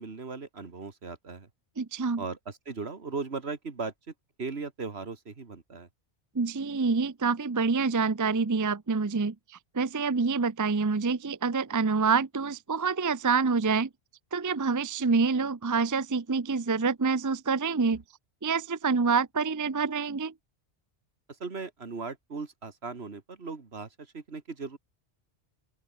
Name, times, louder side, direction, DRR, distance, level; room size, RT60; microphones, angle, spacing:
voice 1, 0.0-1.5 2.2-3.9 4.4-5.9 21.4-24.8, right 4 dB, 70° right, 2.3 m, -38 dB
voice 2, 1.8-2.2 6.3-9.3 9.7-13.9 14.3-18.0 18.4-20.3, right 4 dB, 20° right, 0.5 m, -27 dB
open air
omnidirectional pair, 1.1 m